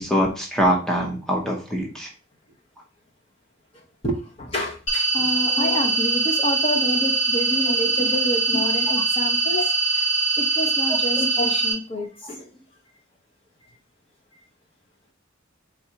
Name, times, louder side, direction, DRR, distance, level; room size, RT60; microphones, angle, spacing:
voice 1, 0.0-2.1 5.5-5.8 11.2-11.5, equal, 5° left, -1 dB, 0.7 m, -24 dB
voice 2, 3.7-10.1 10.4-12.5, equal, 30° left, 1 dB, 0.9 m, -29 dB
sound 1, 4.9-11.7, right 3 dB, 75° left, 2.1 m, -22 dB
4.7 x 3.5 x 2.8 m, 0.36 s
head